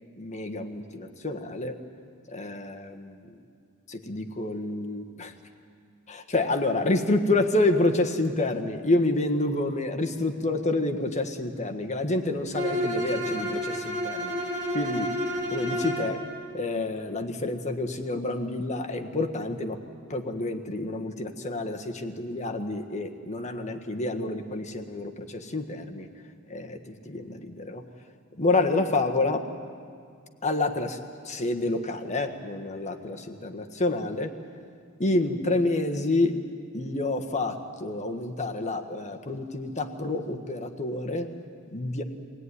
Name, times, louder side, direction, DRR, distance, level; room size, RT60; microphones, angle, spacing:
voice 1, 0.2-1.8 2.3-3.2 3.9-5.3 6.1-15.1 15.5-16.2 16.5-19.8 20.1-26.1 26.5-27.8 28.4-29.5 30.4-31.0 31.2-34.3 35.0-36.3 36.7-41.3 41.7-42.0, left 2 dB, 35° left, 4 dB, 1.5 m, -28 dB
Bowed string instrument, 12.5-16.1, equal, 40° right, 6.5 m, -30 dB
23.5 x 17.0 x 9.8 m, 2.2 s
head